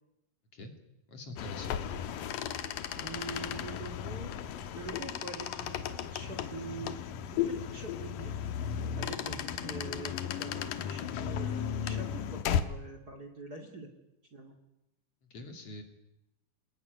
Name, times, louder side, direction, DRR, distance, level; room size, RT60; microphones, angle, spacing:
voice 1, 1.1-1.8 9.3-9.4 15.3-15.8, left 1 dB, 50° left, 5 dB, 3.5 m, -44 dB
sound 1, 1.4-12.6, left 9 dB, 85° left, 2.8 m, -35 dB
voice 2, 3.0-4.3 4.7-7.0 7.3-8.4 9.0-13.9 14.3-14.6, right 3 dB, 30° right, 5 dB, 2.6 m, -44 dB
27.0 x 20.5 x 9.4 m, 0.91 s
omnidirectional pair, 3.8 m